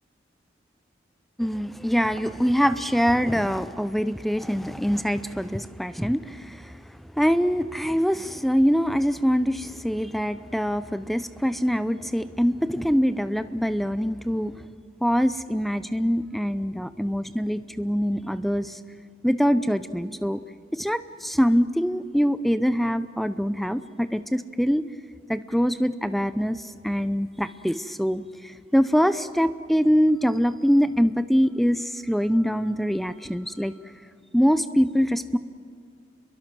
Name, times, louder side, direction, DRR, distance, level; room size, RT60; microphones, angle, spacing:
voice 1, 1.4-6.8 7.2-14.6 15.0-18.8 19.2-20.4 20.7-24.9 25.3-33.7 34.3-35.4, equal, ahead, 12 dB, 0.6 m, -24 dB
29.5 x 22.5 x 6.2 m, 2.3 s
head